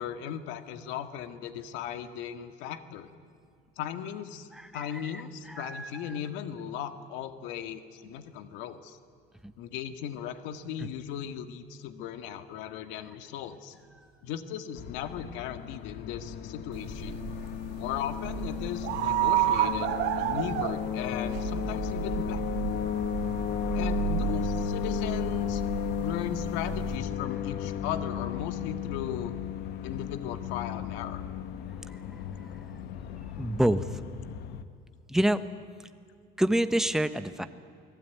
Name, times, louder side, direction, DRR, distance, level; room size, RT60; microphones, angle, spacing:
voice 1, 0.0-3.1 3.8-4.5 4.7-9.0 9.6-13.8 14.2-17.2 17.7-22.4 23.7-25.6 26.0-29.3 29.8-31.2, left 9 dB, 90° left, 9 dB, 1.8 m, -37 dB
voice 2, 4.5-5.2 5.5-6.2 33.4-33.9 35.1-35.4 36.4-37.5, right 1 dB, 5° right, 11 dB, 1.0 m, -27 dB
sound 1, 14.8-34.6, left 10 dB, 60° left, 1.5 m, -34 dB
sound 2, 16.7-27.0, right 12 dB, 70° right, 1.6 m, -32 dB
29.0 x 19.0 x 9.4 m, 2.3 s
cardioid pair, 155°, 19 cm